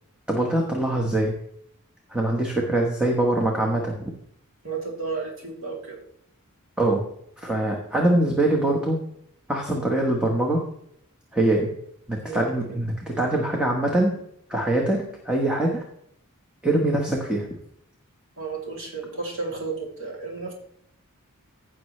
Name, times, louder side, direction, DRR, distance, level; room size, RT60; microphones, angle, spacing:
voice 1, 0.3-1.3 2.1-4.1 6.8-7.0 7.4-9.0 9.5-10.6 11.3-11.7 12.1-14.2 14.5-15.8 16.6-17.5, right 1 dB, 5° right, -2 dB, 1.3 m, -23 dB
voice 2, 4.6-6.0 12.2-12.8 18.4-20.5, right 4 dB, 65° right, -2 dB, 3.1 m, -33 dB
16.0 x 6.2 x 3.3 m, 0.72 s
head